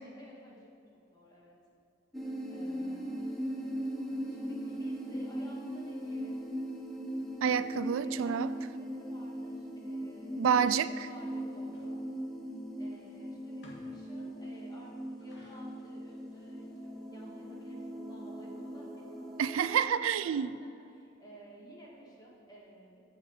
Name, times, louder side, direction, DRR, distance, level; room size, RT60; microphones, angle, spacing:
voice 1, 0.0-0.7 1.1-1.6 2.5-3.2 4.3-6.3 7.9-10.7 11.0-12.1 12.8-19.5 20.1-23.0, right 1 dB, 20° left, -4 dB, 2.2 m, -54 dB
sound 1, 2.1-19.8, equal, ahead, 1.1 m, -39 dB
voice 2, 7.4-8.5 10.4-11.1 19.4-20.5, right 8 dB, 90° right, 14 dB, 0.3 m, -28 dB
sound 2, 11.7-11.9 12.9-13.1 13.6-14.1 15.0-16.7, left 1 dB, 60° left, 1.9 m, -57 dB
14.5 x 5.5 x 4.8 m, 2.5 s
head